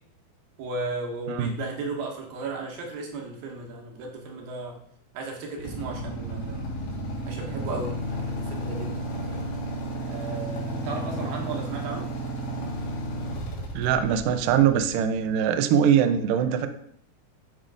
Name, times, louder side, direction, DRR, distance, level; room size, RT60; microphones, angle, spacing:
voice 1, 0.6-4.8 5.1-6.7 7.2-9.5 10.0-12.1, right 3 dB, 70° right, 0 dB, 2.7 m, -35 dB
Motorcycle / Idling, 5.6-15.5, right 1 dB, 85° left, 3.7 m, -33 dB
voice 2, 13.7-16.7, right 8 dB, 85° right, 8 dB, 1.9 m, -22 dB
11.5 x 5.1 x 2.5 m, 0.66 s
omnidirectional pair, 4.8 m